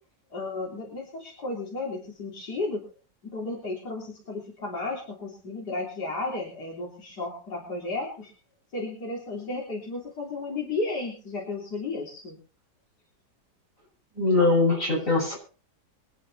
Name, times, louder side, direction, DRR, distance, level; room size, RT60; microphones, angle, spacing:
voice 1, 0.3-2.8 3.2-8.3 8.7-12.4, left 3 dB, 60° left, -3 dB, 4.1 m, -33 dB
voice 2, 14.1-15.4, left 2 dB, 45° left, -3 dB, 8.2 m, -22 dB
24.0 x 9.6 x 4.2 m, 0.39 s
omnidirectional pair, 1.9 m